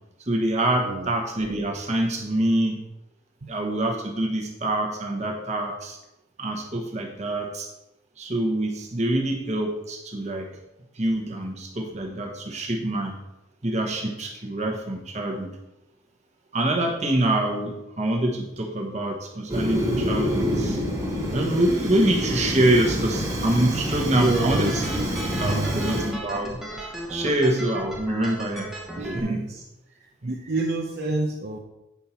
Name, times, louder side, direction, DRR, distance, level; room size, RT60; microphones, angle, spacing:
voice 1, 0.3-2.8 3.5-6.0 6.4-7.7 8.2-10.5 11.0-13.2 13.6-15.5 16.5-20.8 21.3-24.8 25.4-28.7 29.0-29.5 30.2-30.3, right 1 dB, 35° right, 1 dB, 1.3 m, -25 dB
Fire, 19.5-26.1, equal, 20° right, 1.7 m, -27 dB
voice 2, 24.1-25.9 29.0-29.6 30.2-31.6, right 2 dB, 50° right, -1 dB, 0.7 m, -28 dB
sound 1, 24.2-29.2, right 1 dB, ahead, 0.9 m, -36 dB
8.6 x 5.5 x 4.4 m, 0.90 s
head